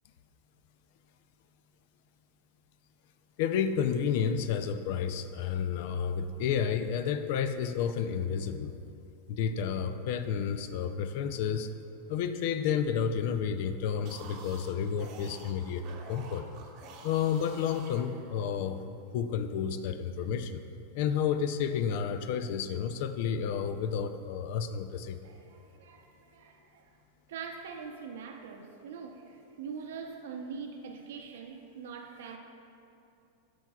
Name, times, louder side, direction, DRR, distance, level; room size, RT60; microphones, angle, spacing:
voice 1, 3.4-8.7 9.3-11.7 12.1-16.5 17.0-18.8 19.1-20.6 20.9-25.2, left 7 dB, 60° left, 0.4 m, -31 dB
sound 1, 13.9-18.7, right 4 dB, 45° right, 0.8 m, -49 dB
voice 2, 25.2-26.9 27.3-32.4, right 6 dB, 80° right, 0.7 m, -43 dB
13.5 x 4.5 x 2.3 m
supercardioid pair, 135°, 0 cm